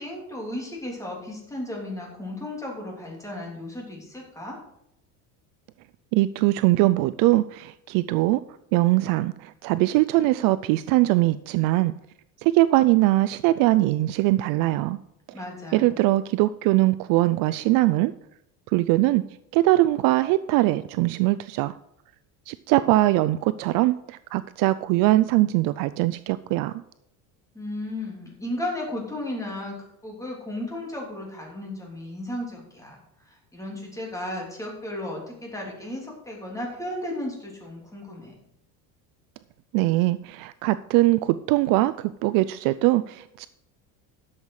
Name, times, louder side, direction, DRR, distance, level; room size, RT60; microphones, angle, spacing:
voice 1, 0.0-4.6 15.3-15.9 27.5-38.3, left 1 dB, 10° left, -2 dB, 3.2 m, -34 dB
voice 2, 6.1-8.4 8.7-11.9 12.4-15.0 15.7-18.1 18.7-19.2 19.5-21.8 22.5-26.8 39.7-43.5, right 17 dB, 55° right, 14 dB, 0.5 m, -21 dB
12.0 x 7.3 x 4.8 m, 0.80 s
cardioid pair, 155°, 40 cm